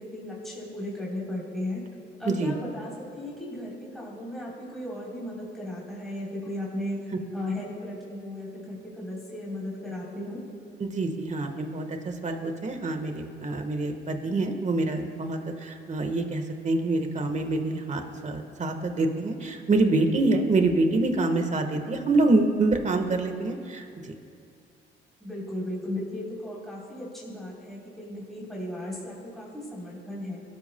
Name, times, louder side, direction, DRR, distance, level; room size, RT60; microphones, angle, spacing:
voice 1, 0.0-1.8 2.2-7.0 7.3-10.4 25.2-30.4, left 1 dB, ahead, -6 dB, 3.5 m, -36 dB
voice 2, 10.8-24.1, right 2 dB, 35° right, 6 dB, 1.4 m, -26 dB
22.5 x 13.0 x 2.2 m, 2.5 s
cardioid pair, 90°, 20 cm